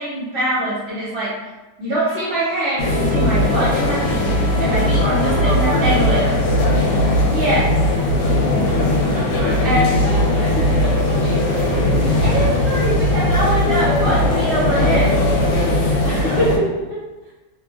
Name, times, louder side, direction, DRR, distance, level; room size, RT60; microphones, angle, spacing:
voice 1, 0.0-1.3 1.8-4.2 4.6-6.2 7.3-7.7 9.6-9.9 10.3-10.8 11.8-15.1 16.0-17.0, right 1 dB, 55° right, -10 dB, 1.2 m, -23 dB
Trumpet, 1.9-6.2, left 3 dB, 25° left, 0.7 m, -34 dB
sound 1, 2.8-16.6, left 1 dB, 80° left, 1.3 m, -18 dB
voice 2, 4.9-6.9 9.1-11.4 17.3-17.4, right 2 dB, 85° right, -5 dB, 1.3 m, -31 dB
3.0 x 2.5 x 2.3 m, 1.1 s
omnidirectional pair, 1.9 m